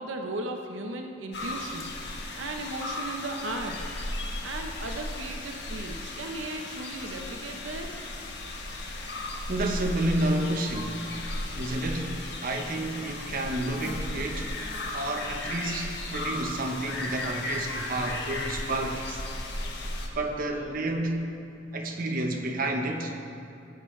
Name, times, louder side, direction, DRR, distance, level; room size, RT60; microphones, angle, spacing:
voice 1, 0.0-1.9 2.3-3.8 4.4-7.9, right 2 dB, 90° right, 3 dB, 0.8 m, -36 dB
sound 1, 1.3-20.1, left 2 dB, 60° left, 1.1 m, -35 dB
voice 2, 9.5-11.1 11.5-14.6 14.9-19.2 20.1-21.3 21.7-23.3, right 1 dB, 50° right, 2 dB, 0.9 m, -30 dB
15.5 x 8.4 x 3.2 m, 2.8 s
head